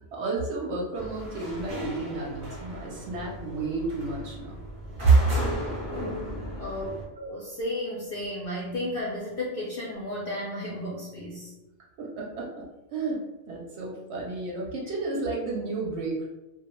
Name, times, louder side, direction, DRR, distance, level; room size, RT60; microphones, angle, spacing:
voice 1, 0.1-4.6 5.0-5.2 12.0-12.6 12.9-13.2 13.5-16.2, right 4 dB, 65° right, -2 dB, 0.8 m, -29 dB
sound 1, 0.9-7.0, equal, 40° right, 0.4 m, -36 dB
voice 2, 6.6-6.9 7.2-11.5, left 1 dB, 65° left, -5 dB, 0.5 m, -33 dB
2.2 x 2.1 x 2.9 m, 0.99 s
omnidirectional pair, 1.4 m